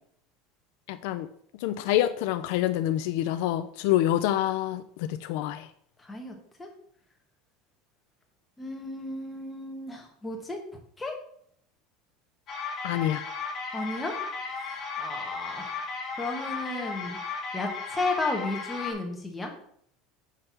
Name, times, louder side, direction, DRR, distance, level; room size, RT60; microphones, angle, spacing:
voice 1, 0.9-1.3 1.6-5.7 12.8-13.2, left 13 dB, 65° left, 10 dB, 0.3 m, -27 dB
voice 2, 6.0-6.7 8.6-10.6 11.0-11.1 13.7-14.2 15.0-15.8 16.2-17.2 17.5-19.5, left 2 dB, 10° left, 1 dB, 1.1 m, -33 dB
sound 1, 12.5-18.9, left 4 dB, 35° left, 1.4 m, -35 dB
6.1 x 3.3 x 5.6 m, 0.66 s
supercardioid pair, 150°, 0 cm